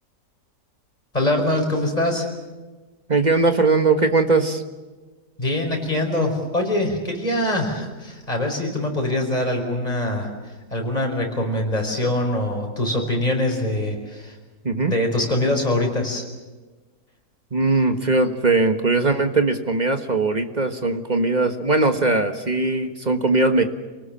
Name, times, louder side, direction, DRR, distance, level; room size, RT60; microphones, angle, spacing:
voice 1, 1.1-2.3 5.4-10.3 10.7-14.3 14.9-16.2, left 1 dB, 25° left, 2 dB, 5.1 m, -23 dB
voice 2, 3.1-4.6 14.6-14.9 17.5-23.6, right 3 dB, 30° right, 7 dB, 1.5 m, -20 dB
28.5 x 19.0 x 7.4 m, 1.3 s
omnidirectional pair, 1.7 m